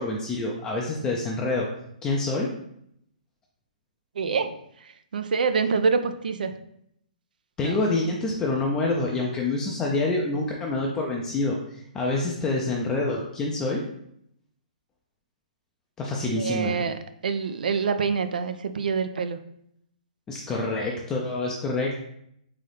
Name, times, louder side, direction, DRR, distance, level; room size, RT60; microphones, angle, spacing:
voice 1, 0.0-1.7 2.0-2.5 7.6-13.8 16.0-16.8 20.3-22.0, left 2 dB, 15° left, -2 dB, 0.4 m, -27 dB
voice 2, 4.2-6.5 7.6-7.8 16.4-19.4, right 5 dB, 80° right, 9 dB, 0.4 m, -26 dB
3.9 x 2.7 x 3.3 m, 0.73 s
hypercardioid pair, 155°, 5 cm